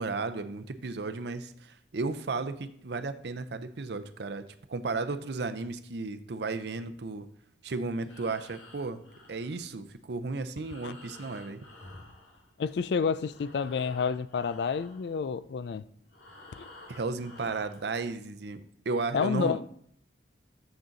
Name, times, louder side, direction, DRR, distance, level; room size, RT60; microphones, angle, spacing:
voice 1, 0.0-7.3 7.6-9.0 9.3-11.6 16.9-19.6, right 3 dB, 65° right, 0.5 m, -34 dB
Breathing, 8.0-12.9 13.2-17.9, left 2 dB, 85° left, 2.3 m, -52 dB
voice 2, 12.6-15.8 16.6-16.7 19.1-19.6, left 5 dB, 65° left, 0.3 m, -29 dB
7.1 x 6.2 x 3.9 m
head